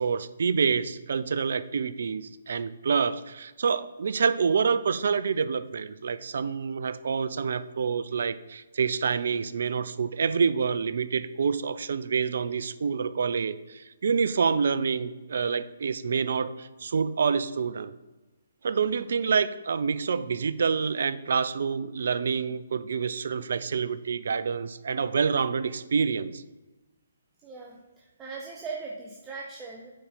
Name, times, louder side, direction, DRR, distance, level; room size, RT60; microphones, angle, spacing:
voice 1, 0.0-17.9 18.6-26.4, right 6 dB, 65° right, 15 dB, 0.5 m, -27 dB
voice 2, 27.4-29.9, right 4 dB, 15° right, -2 dB, 0.8 m, -39 dB
8.6 x 4.3 x 5.5 m, 1.1 s
figure-of-eight pair, 140°, 0 cm